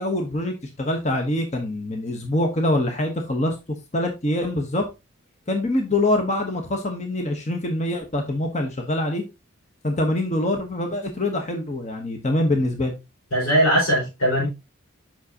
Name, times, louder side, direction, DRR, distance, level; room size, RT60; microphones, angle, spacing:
voice 1, 0.0-3.6 3.9-4.9 5.5-9.2 9.8-12.9, left 1 dB, 35° left, 0.9 m, -24 dB
voice 2, 13.3-14.5, equal, 80° left, 4.4 m, -20 dB
7.4 x 5.9 x 2.7 m
head